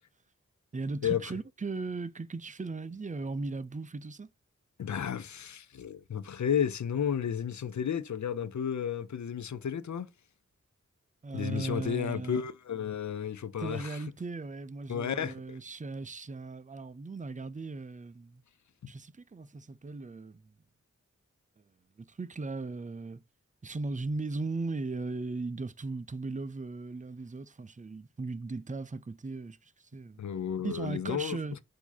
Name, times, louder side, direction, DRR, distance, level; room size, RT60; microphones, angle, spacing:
voice 1, 0.7-4.3 11.2-12.4 13.6-18.4 18.9-20.5 22.0-23.2 23.6-30.2 30.6-31.6, right 3 dB, 25° right, 0.5 m, -37 dB
voice 2, 4.8-10.1 11.3-14.0 14.9-15.6 30.2-31.4, left 8 dB, 70° left, 0.5 m, -32 dB
4.7 x 2.8 x 4.0 m
cardioid pair, 40°, 30 cm